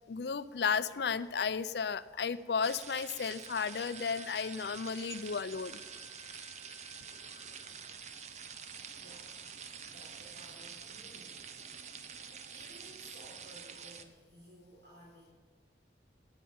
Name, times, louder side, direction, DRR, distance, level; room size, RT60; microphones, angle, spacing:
voice 1, 0.1-5.8, left 6 dB, 70° left, 15 dB, 0.5 m, -34 dB
sound 1, 2.6-14.0, right 6 dB, 40° right, 0.7 m, -47 dB
sound 2, 2.7-9.1, left 5 dB, 5° right, 2.1 m, -60 dB
voice 2, 9.0-9.3 9.9-11.5 11.9-12.2 12.5-15.3, right 1 dB, 65° right, -6 dB, 4.1 m, -56 dB
11.0 x 8.9 x 8.8 m, 1.4 s
head